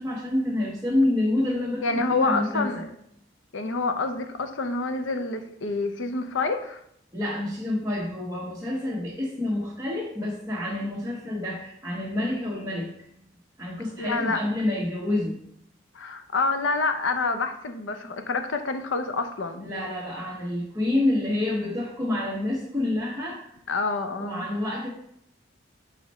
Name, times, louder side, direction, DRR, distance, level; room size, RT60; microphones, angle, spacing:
voice 1, 0.0-2.8 7.1-12.9 13.6-15.4 19.6-23.6 24.2-24.9, left 1 dB, 15° right, -7 dB, 1.1 m, -28 dB
voice 2, 1.8-2.9 3.5-6.8 14.0-14.4 15.9-19.7 23.7-24.5, left 3 dB, 85° left, 8 dB, 0.7 m, -27 dB
4.9 x 4.3 x 5.4 m, 0.71 s
head